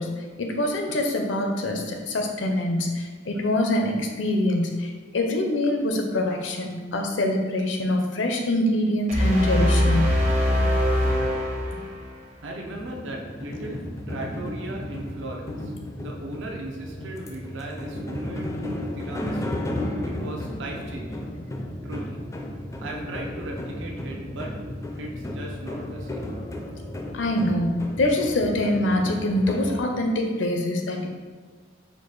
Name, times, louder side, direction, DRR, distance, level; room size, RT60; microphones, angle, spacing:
voice 1, 0.0-10.2 27.1-31.1, left 1 dB, 75° left, 2 dB, 0.6 m, -24 dB
sound 1, 9.1-12.3, equal, 40° right, 0.7 m, -22 dB
voice 2, 12.4-15.7 16.0-18.5 19.0-19.6 20.0-21.3 21.8-22.2 22.8-24.5 25.0-26.3, right 2 dB, 75° right, -1 dB, 0.6 m, -37 dB
sound 2, 12.6-29.8, left 1 dB, 15° left, 0.4 m, -34 dB
4.7 x 2.4 x 3.9 m, 1.5 s
head